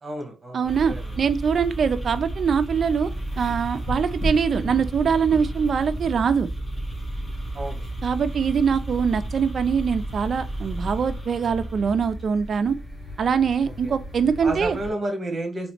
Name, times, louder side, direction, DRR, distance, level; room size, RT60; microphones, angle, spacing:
voice 1, 0.0-1.1 7.5-7.8 13.8-14.0 14.4-15.7, right 1 dB, 30° right, 1.4 m, -31 dB
voice 2, 0.5-3.1 3.4-6.5 8.0-12.8 13.2-14.8, right 6 dB, 50° right, 0.4 m, -23 dB
sound 1, 0.6-14.9, right 1 dB, 15° left, 1.5 m, -32 dB
4.0 x 3.1 x 3.2 m
cardioid pair, 130°, 0 cm